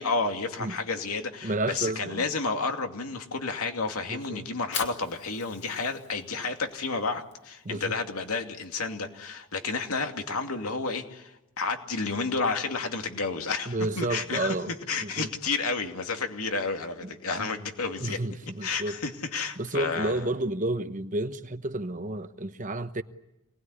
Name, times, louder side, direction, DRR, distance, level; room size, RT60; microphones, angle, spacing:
voice 1, 0.0-14.6 14.9-18.2 18.6-20.2, left 4 dB, 80° left, 2.5 m, -31 dB
voice 2, 1.4-2.2 4.1-4.5 7.6-8.0 13.7-14.7 15.0-15.3 17.0-17.1 17.4-17.5 18.0-19.1 19.6-23.0, right 2 dB, 35° right, 1.1 m, -31 dB
Fire, 4.4-10.6, left 7 dB, 55° left, 2.6 m, -42 dB
27.5 x 19.5 x 9.8 m
head